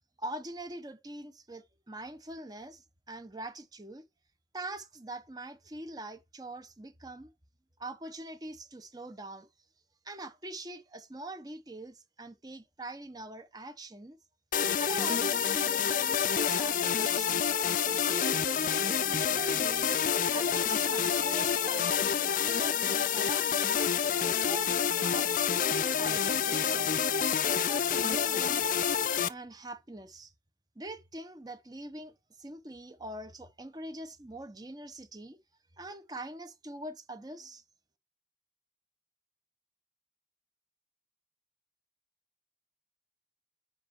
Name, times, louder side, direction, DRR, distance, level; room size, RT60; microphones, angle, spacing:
voice 1, 0.2-4.0 4.5-7.3 7.8-9.5 10.0-14.2 14.8-18.5 18.8-20.0 20.3-23.8 24.3-27.1 27.4-28.7 29.3-30.3 30.7-35.4 35.8-37.6, right 1 dB, 20° right, 1.0 m, -43 dB
sound 1, 14.5-29.3, left 8 dB, 45° left, 0.5 m, -28 dB
7.5 x 5.4 x 4.5 m
head